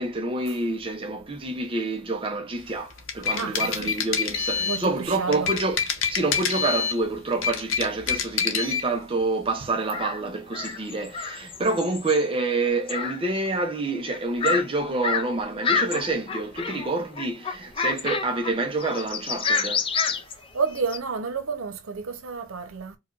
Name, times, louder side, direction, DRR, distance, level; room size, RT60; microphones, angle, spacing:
voice 1, 0.0-20.2, right 2 dB, 25° right, 0.5 m, -27 dB
sound 1, 2.9-4.9 5.3-7.0 7.3-8.9, left 6 dB, 75° left, 0.8 m, -26 dB
voice 2, 3.3-3.9 4.3-5.5 20.5-23.0, right 5 dB, 85° right, 0.8 m, -31 dB
sound 2, 9.9-10.2 10.5-12.2 12.9-13.2 13.5-13.6 14.1-14.6 15.0-15.3 15.6-16.9 17.2-18.5 18.8-21.0, left 5 dB, 25° left, 0.4 m, -28 dB
4.8 x 2.2 x 2.4 m
head